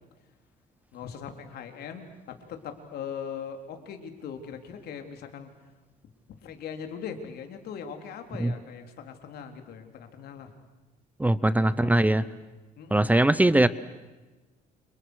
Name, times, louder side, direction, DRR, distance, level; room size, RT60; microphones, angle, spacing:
voice 1, 0.9-5.7 6.4-10.5 11.5-12.1 12.8-13.2 13.4-13.7, left 7 dB, 70° left, 6 dB, 3.9 m, -40 dB
voice 2, 11.2-12.2 12.9-13.7, right 1 dB, 10° right, 16 dB, 0.8 m, -21 dB
29.5 x 28.5 x 6.5 m, 1.2 s
cardioid pair, 110°, 17 cm